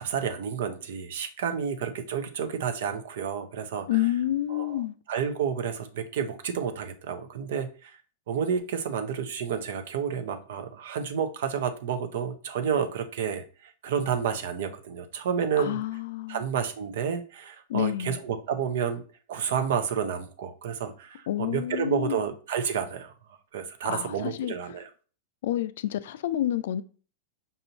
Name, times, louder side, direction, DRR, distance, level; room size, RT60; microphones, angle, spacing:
voice 1, 0.0-7.9 8.3-15.8 16.3-19.0 19.3-23.1 23.5-24.9, right 7 dB, 70° right, 0.6 m, -30 dB
voice 2, 3.9-5.0 15.6-16.5 17.7-18.2 21.3-22.2 23.8-24.5 25.4-26.8, left 13 dB, 70° left, 0.3 m, -29 dB
5.4 x 2.6 x 2.8 m
hypercardioid pair, 115°, 0 cm